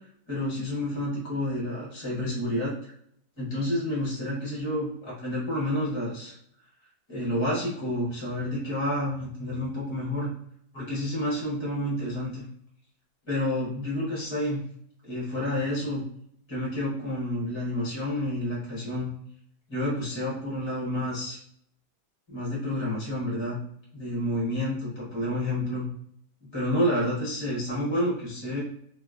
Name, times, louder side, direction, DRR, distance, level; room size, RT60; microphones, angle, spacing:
voice 1, 0.3-2.8 3.4-6.3 7.1-10.3 10.7-12.4 13.2-14.6 15.0-16.0 16.5-19.1 19.7-21.4 22.3-23.6 23.9-25.9 26.4-28.6, left 1 dB, 20° left, -6 dB, 1.0 m, -29 dB
3.0 x 2.7 x 2.4 m, 0.68 s
omnidirectional pair, 1.8 m